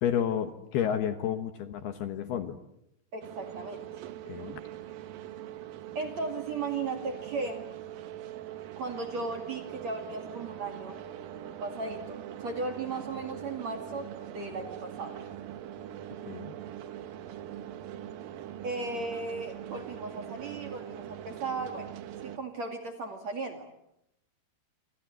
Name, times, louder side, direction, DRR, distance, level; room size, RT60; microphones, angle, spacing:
voice 1, 0.0-2.6 4.3-4.6 16.3-16.5, left 9 dB, 70° left, 9 dB, 2.8 m, -31 dB
voice 2, 3.1-3.8 4.4-4.5 5.9-7.7 8.8-11.0 11.6-14.1 14.3-15.2 18.6-21.9 22.2-23.7, right 3 dB, 45° right, 5 dB, 2.8 m, -36 dB
sound 1, 3.2-22.4, right 11 dB, 70° right, 2.4 m, -42 dB
27.5 x 27.5 x 7.8 m, 0.80 s
omnidirectional pair, 5.6 m